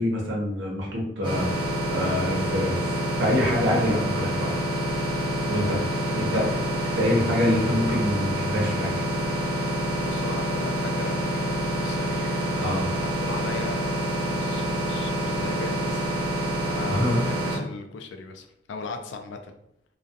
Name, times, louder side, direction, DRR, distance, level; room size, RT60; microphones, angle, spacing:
voice 1, 0.0-1.4 1.9-4.6 5.5-5.8 6.2-6.6 7.0-8.9 12.6-12.9 16.9-17.2, left 1 dB, 75° right, -1 dB, 0.8 m, -25 dB
sound 1, 1.2-17.6, equal, 25° right, 0.7 m, -27 dB
voice 2, 5.5-6.5 10.0-13.9 14.3-16.3 16.7-19.5, left 4 dB, 75° left, 6 dB, 0.3 m, -37 dB
2.3 x 2.2 x 2.6 m, 0.79 s
head